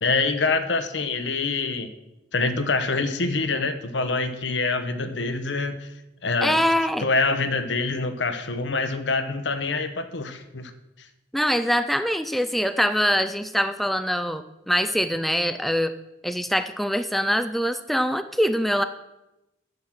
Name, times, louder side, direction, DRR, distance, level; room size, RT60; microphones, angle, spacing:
voice 1, 0.0-1.9 2.3-5.9 6.2-6.6 7.0-10.7 11.0-11.1, left 3 dB, 75° left, 9 dB, 1.0 m, -25 dB
voice 2, 6.4-7.1 11.3-15.9 16.2-18.8, equal, ahead, 9 dB, 0.4 m, -23 dB
9.4 x 7.4 x 6.3 m, 0.93 s
head